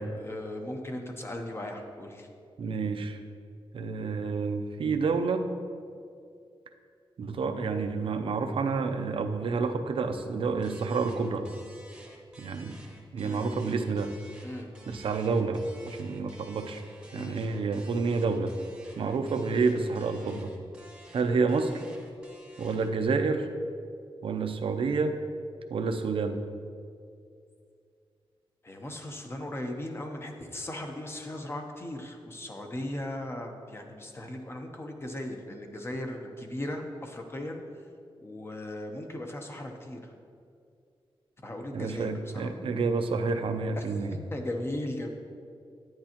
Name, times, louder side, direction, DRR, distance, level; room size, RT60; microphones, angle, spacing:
voice 1, 0.0-2.3 13.2-13.5 14.4-14.7 17.1-17.4 28.6-37.6 38.2-40.1 41.4-42.5 43.8-43.9 44.3-45.1, left 1 dB, 25° left, 3 dB, 0.8 m, -37 dB
voice 2, 2.6-3.2 3.7-5.5 7.2-11.5 12.4-12.8 13.1-14.1 14.9-16.8 17.1-18.5 19.0-20.5 21.1-21.8 22.6-23.5 24.2-25.2 25.7-26.4 41.7-44.2, right 4 dB, 65° right, 7 dB, 0.6 m, -29 dB
sound 1, 10.6-23.0, right 1 dB, 10° right, 1.0 m, -53 dB
10.5 x 9.5 x 2.9 m, 2.4 s
wide cardioid pair, 155°, 10 cm